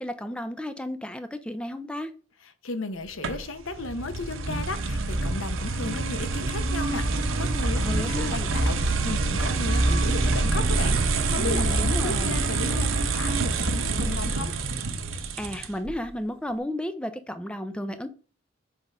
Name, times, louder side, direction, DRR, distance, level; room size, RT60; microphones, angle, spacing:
voice 1, 0.0-2.1 7.7-8.5 11.3-12.4 15.4-18.1, left 1 dB, 5° left, 0.4 m, -33 dB
voice 2, 2.6-14.5, left 3 dB, 90° left, 0.8 m, -35 dB
sound 1, 3.2-15.9, right 3 dB, 90° right, 0.8 m, -26 dB
6.1 x 3.6 x 5.4 m
head